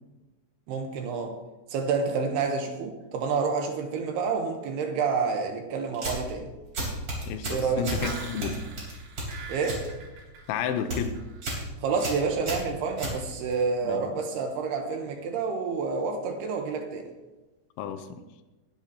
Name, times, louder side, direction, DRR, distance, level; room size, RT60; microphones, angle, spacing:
voice 1, 0.7-1.4 1.7-6.5 7.5-7.9 9.5-9.8 11.8-17.1, right 5 dB, 75° right, 4 dB, 2.7 m, -28 dB
sound 1, 5.9-6.3 6.7-8.0 8.4-9.9 10.2-10.5 10.8-11.1 11.4-11.7 12.0-13.6, right 1 dB, 30° right, 4.1 m, -33 dB
voice 2, 7.3-8.7 10.5-11.2 13.8-14.1 17.8-18.1, left 7 dB, 85° left, 9 dB, 3.1 m, -31 dB
sound 2, 7.8-10.9 11.2-11.6, right 4 dB, 90° right, 5.0 m, -40 dB
20.5 x 10.5 x 2.9 m, 1.1 s
omnidirectional pair, 5.4 m